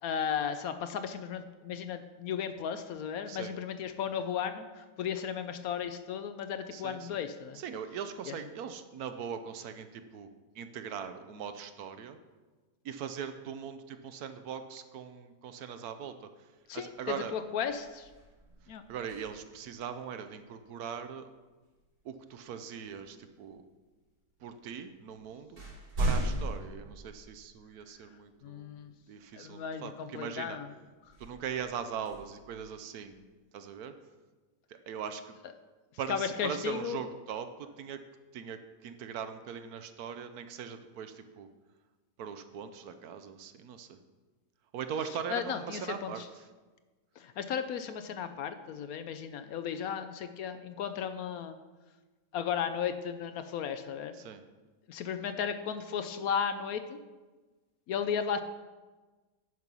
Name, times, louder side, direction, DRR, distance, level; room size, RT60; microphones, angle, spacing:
voice 1, 0.0-7.6 8.3-8.4 16.7-18.1 18.7-18.8 28.4-28.9 29.3-30.7 36.1-37.0 45.3-46.3 47.2-51.6 52.3-54.1 54.9-57.0 57.9-58.4, left 7 dB, 70° left, 9 dB, 0.9 m, -35 dB
voice 2, 6.7-7.1 7.5-10.3 10.5-12.2 12.8-16.3 16.7-17.3 18.9-21.3 22.0-23.6 24.4-25.6 26.0-28.8 29.1-30.6 31.2-33.2 33.5-33.9 34.7-35.4 36.0-38.0 38.3-41.5 42.2-44.0 44.7-46.2 54.2-54.4, right 7 dB, 70° right, 9 dB, 1.1 m, -40 dB
sound 1, 17.0-17.2 17.6-19.7 21.8-22.0 22.8-23.6 24.5-24.6 25.0-27.8 28.3-28.4 31.0-33.2, right 1 dB, 90° right, 3.5 m, -37 dB
9.5 x 5.3 x 6.0 m, 1.3 s
omnidirectional pair, 1.8 m